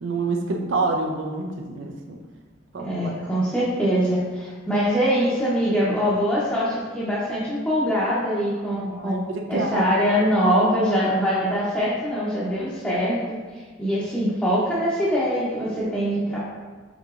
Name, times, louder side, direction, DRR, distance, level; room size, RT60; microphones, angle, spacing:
voice 1, 0.0-2.2 2.7-3.3 8.7-10.0, right 3 dB, 80° right, 2 dB, 0.5 m, -28 dB
voice 2, 2.8-9.2 9.5-16.4, equal, 5° left, -11 dB, 0.6 m, -23 dB
4.7 x 3.8 x 2.4 m, 1.4 s
head